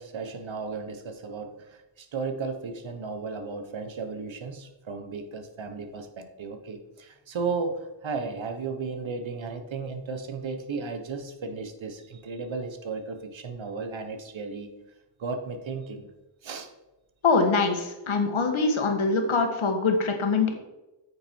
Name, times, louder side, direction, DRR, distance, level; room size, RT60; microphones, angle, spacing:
voice 1, 0.0-14.7 15.2-16.1 16.4-16.7, right 4 dB, 65° right, 7 dB, 1.3 m, -34 dB
voice 2, 17.2-20.5, left 4 dB, 70° left, 4 dB, 1.8 m, -23 dB
8.9 x 6.6 x 4.7 m, 1.0 s
cardioid pair, 75°, 50 cm